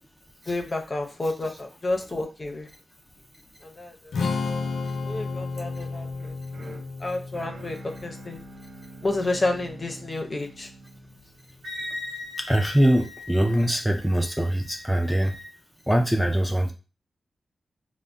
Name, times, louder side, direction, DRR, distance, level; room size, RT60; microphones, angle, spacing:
voice 1, 0.5-2.7 3.6-4.1 5.0-8.4 9.0-10.7, left 2 dB, 40° left, 3 dB, 0.6 m, -30 dB
Strum, 4.1-10.4, left 4 dB, 85° left, 0.4 m, -33 dB
sound 1, 6.1-12.3, right 3 dB, 75° right, 0.4 m, -46 dB
Wind instrument woodwind instrument, 11.6-15.5, left 2 dB, 90° right, 1.0 m, -40 dB
voice 2, 12.4-15.4 15.9-16.7, equal, ahead, 3 dB, 0.4 m, -22 dB
3.3 x 2.1 x 2.5 m, 0.31 s
cardioid pair, 60°, 0 cm